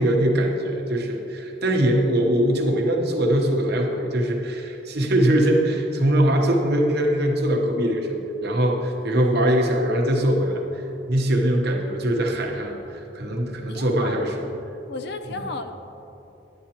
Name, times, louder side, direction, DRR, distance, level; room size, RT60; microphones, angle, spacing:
voice 1, 0.0-10.8 11.1-14.4 15.3-15.4, right 1 dB, 55° right, 1 dB, 1.0 m, -22 dB
voice 2, 13.7-14.6 14.9-15.7, left 2 dB, 60° left, 8 dB, 0.5 m, -34 dB
10.5 x 8.7 x 2.9 m, 3.0 s
head